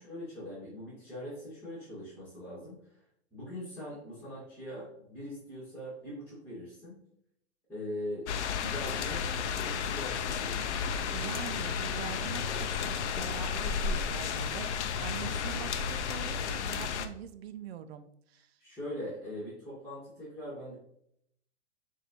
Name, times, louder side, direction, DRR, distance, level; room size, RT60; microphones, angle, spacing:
voice 1, 0.0-3.0 3.3-7.0 7.7-8.3 8.6-10.6 18.6-20.7, equal, 5° left, -10 dB, 1.8 m, -42 dB
sound 1, 8.3-17.1, left 6 dB, 75° left, 0.6 m, -33 dB
voice 2, 11.1-18.5, right 9 dB, 60° right, 11 dB, 0.5 m, -44 dB
6.4 x 2.7 x 2.9 m, 0.73 s
hypercardioid pair, 120°, 34 cm